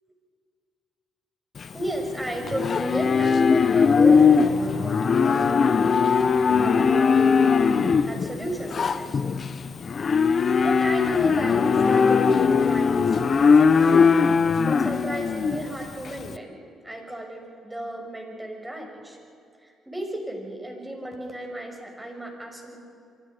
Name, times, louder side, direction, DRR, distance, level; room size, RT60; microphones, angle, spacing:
Livestock farm animals working animals, 1.6-16.3, left 5 dB, 45° left, 1.0 m, -20 dB
voice 1, 1.7-6.2 6.6-7.5 7.8-9.2 10.6-14.0 14.6-19.2 19.6-22.8, right 1 dB, 10° right, 2 dB, 6.0 m, -34 dB
27.0 x 24.0 x 5.2 m, 2.5 s
cardioid pair, 90°, 0 cm